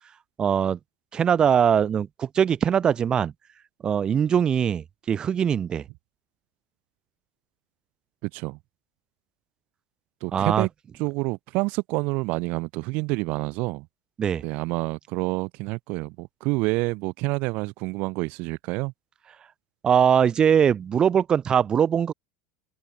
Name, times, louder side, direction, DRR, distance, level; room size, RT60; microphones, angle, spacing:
voice 1, 0.4-0.8 1.1-3.3 3.8-5.8 10.3-10.7 14.2-14.4 19.8-22.1, right 8 dB, 25° right, 0.7 m, -21 dB
voice 2, 8.2-8.6 10.2-10.7 11.0-13.9 14.4-18.9, right 25 dB, 55° right, 2.7 m, -28 dB
open air
supercardioid pair, 140°, 3 cm